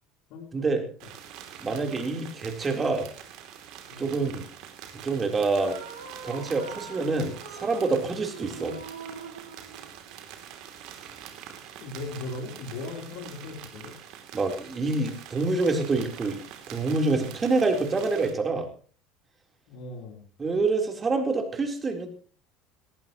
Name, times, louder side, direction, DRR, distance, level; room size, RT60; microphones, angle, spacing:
voice 1, 0.3-0.7 1.0-1.1 3.9-4.2 11.8-13.9 19.7-20.2, left 3 dB, 55° left, 2 dB, 3.6 m, -38 dB
sound 1, 1.0-18.3, right 9 dB, 55° right, 3.0 m, -45 dB
voice 2, 1.6-3.1 4.0-4.4 5.0-5.8 6.2-8.8 14.3-16.4 16.7-18.7 20.4-22.1, right 3 dB, 25° right, 4 dB, 3.8 m, -26 dB
sound 2, 5.5-10.3, right 5 dB, 80° right, 3.8 m, -43 dB
18.5 x 17.5 x 3.1 m, 0.41 s
figure-of-eight pair, 65°, 0 cm